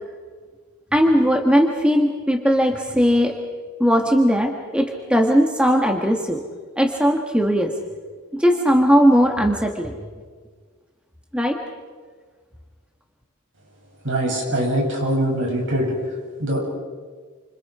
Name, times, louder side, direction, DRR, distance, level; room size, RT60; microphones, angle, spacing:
voice 1, 0.9-3.3 3.8-6.4 6.8-7.7 8.3-10.0 11.3-11.6, equal, 5° right, 2 dB, 1.7 m, -18 dB
voice 2, 14.0-15.9 16.4-16.6, right 1 dB, 60° right, -1 dB, 7.9 m, -22 dB
29.5 x 27.0 x 5.0 m, 1.5 s
head